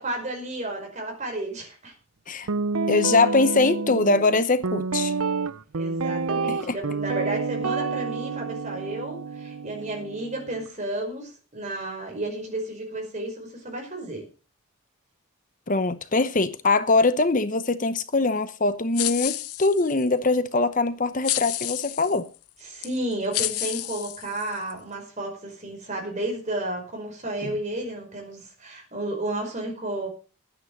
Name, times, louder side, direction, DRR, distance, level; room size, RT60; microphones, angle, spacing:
voice 1, 0.0-1.9 5.7-14.3 22.6-30.1, right 1 dB, 30° right, 5.4 m, -32 dB
Guitar, 2.5-10.7, right 4 dB, 75° right, 0.7 m, -28 dB
voice 2, 2.9-5.1 6.5-6.8 15.7-22.3 27.4-27.5, left 3 dB, 35° left, 0.8 m, -22 dB
sound 1, 18.9-20.1 21.2-22.2 22.8-22.9 23.3-24.7, left 15 dB, 85° left, 0.8 m, -30 dB
11.0 x 9.8 x 6.5 m
head